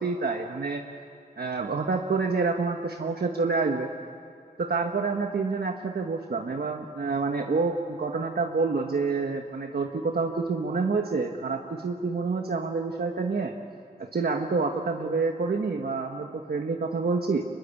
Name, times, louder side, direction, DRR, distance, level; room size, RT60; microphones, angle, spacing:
voice 1, 0.0-0.8 1.4-3.9 4.6-13.5 14.0-17.4, right 4 dB, 85° right, 3 dB, 1.3 m, -28 dB
25.0 x 21.0 x 8.4 m, 2.6 s
wide cardioid pair, 75°, 16 cm